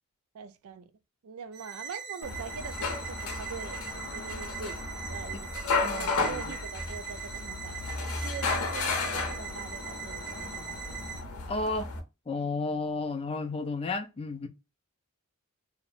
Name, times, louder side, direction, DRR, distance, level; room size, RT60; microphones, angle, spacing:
voice 1, 0.3-0.9 1.2-4.8 5.1-7.8 8.2-11.0, right 6 dB, 70° right, 0.3 m, -43 dB
sound 1, 1.5-11.2, right 7 dB, 50° right, 0.8 m, -42 dB
sound 2, 2.2-12.0, left 3 dB, 75° left, 0.7 m, -33 dB
voice 2, 5.8-6.4 11.5-11.9 12.3-14.5, left 3 dB, 25° left, 0.4 m, -32 dB
2.7 x 2.0 x 2.4 m
head